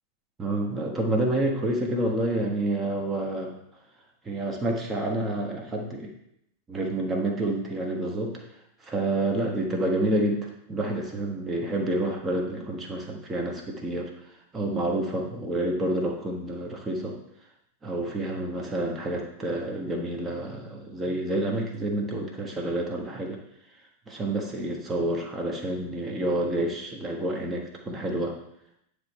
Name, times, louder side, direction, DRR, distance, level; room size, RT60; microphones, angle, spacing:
voice 1, 0.4-3.6 4.2-6.1 6.7-8.4 8.8-17.2 17.8-23.4 24.1-28.4, right 1 dB, 20° right, 1 dB, 1.4 m, -28 dB
9.6 x 3.5 x 4.2 m, 0.76 s
figure-of-eight pair, 90°, 0 cm